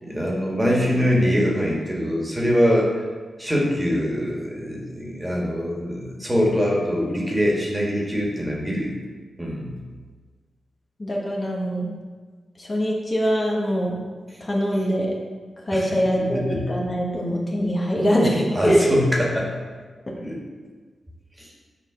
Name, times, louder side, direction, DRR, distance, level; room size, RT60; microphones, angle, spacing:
voice 1, 0.0-3.0 3.4-8.9 9.4-9.7 15.7-15.9 16.2-16.7 18.5-19.5 20.2-20.4 21.4-21.5, equal, 20° right, -2 dB, 1.7 m, -23 dB
voice 2, 11.0-11.9 12.6-14.0 14.4-15.1 15.6-18.9, equal, 40° left, -2 dB, 1.1 m, -23 dB
7.2 x 2.8 x 5.1 m, 1.5 s
supercardioid pair, 45°, 0 cm